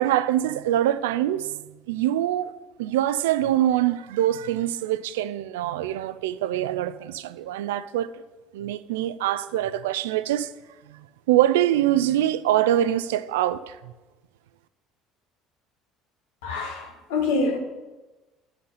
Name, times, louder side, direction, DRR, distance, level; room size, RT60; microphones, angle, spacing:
voice 1, 0.0-2.5 2.8-8.1 8.5-10.5 10.9-13.9, right 12 dB, 85° right, 0.3 m, -24 dB
voice 2, 16.4-17.6, left 3 dB, 85° left, 1.0 m, -26 dB
9.6 x 3.9 x 5.6 m
supercardioid pair, 75°, 0 cm